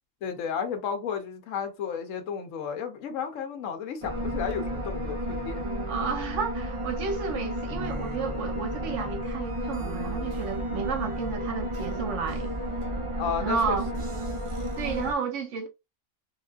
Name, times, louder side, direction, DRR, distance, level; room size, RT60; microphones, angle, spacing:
voice 1, 0.2-5.9 13.2-13.8, left 7 dB, 75° left, 1.1 m, -33 dB
sound 1, 4.0-15.1, equal, 45° right, 0.4 m, -32 dB
voice 2, 5.9-12.5 13.4-13.9 14.8-15.7, right 6 dB, 70° right, 1.1 m, -32 dB
3.5 x 2.4 x 2.3 m
omnidirectional pair, 1.4 m